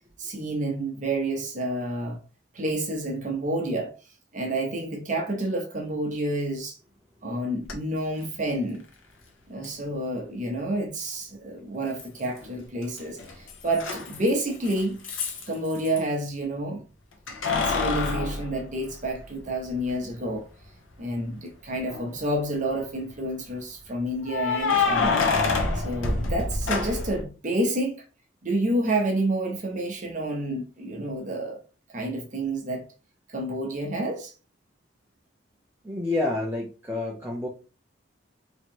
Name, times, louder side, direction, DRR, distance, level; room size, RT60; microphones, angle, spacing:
voice 1, 0.2-2.2 2.5-3.9 4.3-6.8 7.2-8.8 9.5-15.0 15.5-16.8 17.6-20.5 21.0-25.2 25.7-28.0 28.4-31.6 31.9-32.8 33.3-34.3, right 1 dB, 40° right, 0.9 m, -29 dB
Keys jangling, 7.6-7.7 9.6-9.7 12.0-12.5 12.8-16.0 17.3-19.4 19.9-20.0 21.8-22.3 24.3-27.2, left 4 dB, 80° left, 0.9 m, -27 dB
voice 2, 35.8-37.5, left 2 dB, 10° right, 0.7 m, -28 dB
3.2 x 2.9 x 4.5 m
head